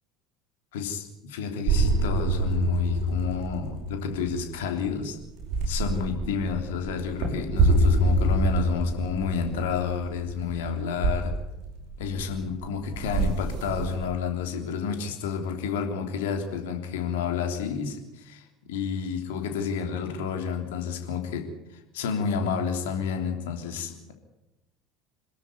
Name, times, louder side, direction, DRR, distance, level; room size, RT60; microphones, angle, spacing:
voice 1, 0.7-5.2 5.7-11.3 12.0-24.1, left 6 dB, 65° left, 5 dB, 3.3 m, -30 dB
sound 1, 1.7-14.0, right 2 dB, 55° right, 6.1 m, -26 dB
27.0 x 12.5 x 9.8 m, 0.97 s
figure-of-eight pair, 65°, 0 cm